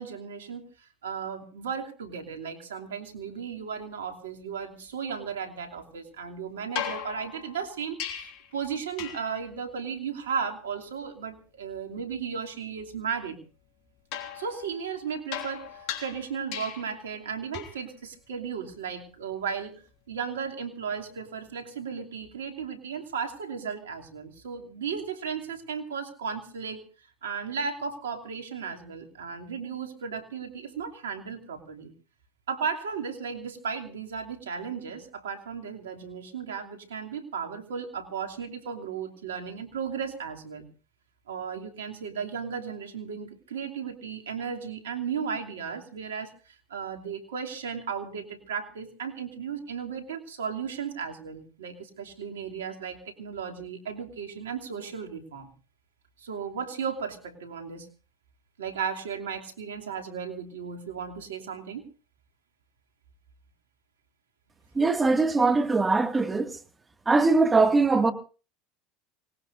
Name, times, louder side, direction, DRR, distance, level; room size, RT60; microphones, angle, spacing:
voice 1, 0.0-13.4 14.3-19.7 20.1-26.8 27.2-31.9 32.5-40.7 41.3-55.5 56.2-57.9 58.6-61.8, right 6 dB, 90° right, 2.8 m, -35 dB
sound 1, 6.8-8.5 9.0-9.4 14.1-17.0 17.5-17.9 19.9-20.0, left 9 dB, 65° left, 3.3 m, -38 dB
voice 2, 64.8-66.6 67.1-68.1, right 3 dB, 20° right, 2.1 m, -21 dB
25.5 x 19.0 x 2.7 m
hypercardioid pair, 85°, 0 cm